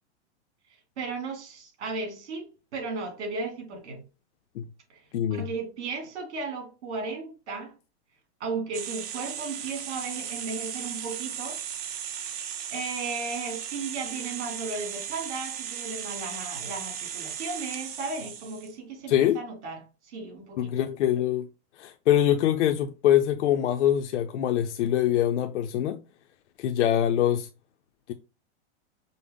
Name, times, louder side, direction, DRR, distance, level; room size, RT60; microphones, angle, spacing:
voice 1, 1.0-4.0 4.9-5.0 5.3-7.8 8.4-11.6 12.7-20.8, right 4 dB, 70° right, 2.4 m, -35 dB
voice 2, 5.1-5.4 19.1-19.4 20.6-21.5 21.8-26.0 26.6-27.5 28.1-28.2, left 11 dB, 80° left, 0.5 m, -24 dB
sound 1, 8.7-18.7, right 9 dB, 35° right, 0.6 m, -36 dB
5.3 x 2.0 x 3.5 m
supercardioid pair, 160°, 35 cm